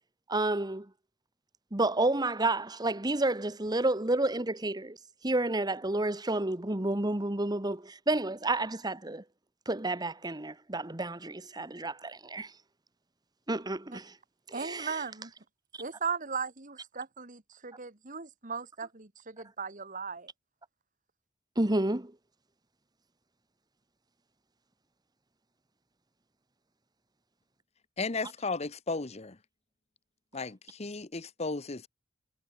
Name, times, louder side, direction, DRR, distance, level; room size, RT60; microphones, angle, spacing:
voice 1, 0.3-0.9 1.7-5.0 5.2-9.2 9.7-12.5 13.5-14.1 14.5-15.0 21.6-22.1, right 2 dB, 20° right, 1.3 m, -30 dB
voice 2, 14.5-15.3 15.8-20.3, right 5 dB, 40° right, 2.0 m, -37 dB
voice 3, 28.0-29.4 30.3-31.9, left 3 dB, 35° left, 1.0 m, -35 dB
head